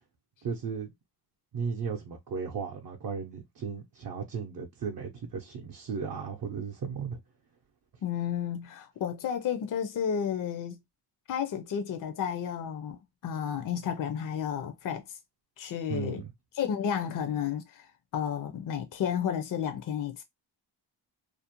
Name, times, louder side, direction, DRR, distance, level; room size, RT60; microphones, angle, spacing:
voice 1, 0.4-0.9 1.5-7.2 15.9-16.3, right 6 dB, 55° right, 0.6 m, -35 dB
voice 2, 8.0-10.8 11.3-13.0 13.2-15.0 15.6-16.2 16.6-17.9 18.1-20.2, left 8 dB, 50° left, 0.5 m, -32 dB
2.5 x 2.0 x 2.8 m
cardioid pair, 90°, 43 cm